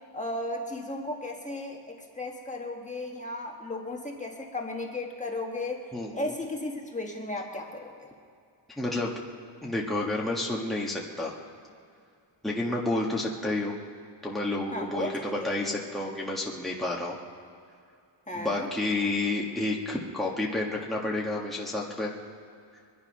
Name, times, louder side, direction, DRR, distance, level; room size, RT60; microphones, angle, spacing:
voice 1, 0.1-5.8 6.1-7.9 13.4-13.5 14.7-15.1 15.4-15.5 18.3-18.7, left 2 dB, 15° left, 0 dB, 1.5 m, -35 dB
voice 2, 5.9-6.3 8.8-9.1 9.6-11.3 12.4-13.7 14.2-17.2 18.3-22.1, left 2 dB, ahead, -3 dB, 1.4 m, -30 dB
24.0 x 10.5 x 5.5 m, 2.4 s
wide cardioid pair, 145°, 45 cm